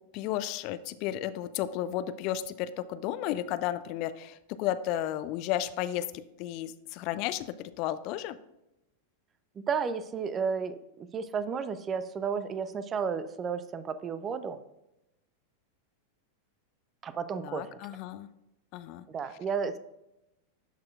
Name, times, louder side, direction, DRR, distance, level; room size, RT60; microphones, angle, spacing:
voice 1, 0.1-6.0 6.4-8.4 17.4-18.3 18.7-19.0, left 12 dB, 40° left, 14 dB, 0.3 m, -33 dB
voice 2, 9.6-14.6 17.0-17.8 19.1-19.8, right 6 dB, 25° right, 13 dB, 0.4 m, -32 dB
12.0 x 4.2 x 2.4 m, 0.90 s
figure-of-eight pair, 90°, 0 cm